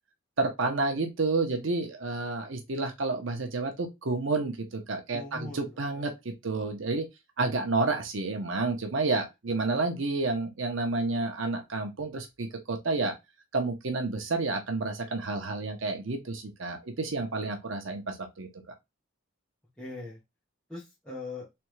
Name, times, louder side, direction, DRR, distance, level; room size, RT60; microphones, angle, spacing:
voice 1, 0.4-7.1 7.4-13.1 13.5-18.5, right 3 dB, 75° right, 0.8 m, -30 dB
voice 2, 5.1-6.1 19.8-20.2 20.7-21.5, left 2 dB, 5° left, 1.3 m, -41 dB
3.5 x 3.4 x 3.1 m
head